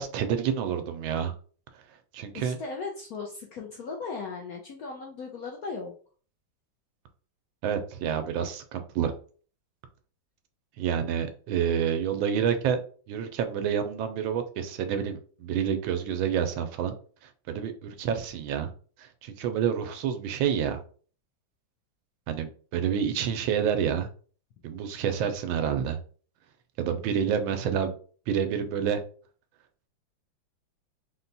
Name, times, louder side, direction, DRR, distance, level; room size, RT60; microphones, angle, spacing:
voice 1, 0.0-1.3 2.1-2.6 7.6-9.1 10.8-12.8 13.1-16.9 17.5-18.7 19.0-20.8 22.3-24.1 24.6-26.0 26.8-27.9 28.3-29.0, right 8 dB, 85° right, 7 dB, 1.4 m, -28 dB
voice 2, 2.3-5.9 26.9-27.0, left 4 dB, 75° left, 0 dB, 0.8 m, -37 dB
4.2 x 2.2 x 3.9 m, 0.43 s
omnidirectional pair, 2.1 m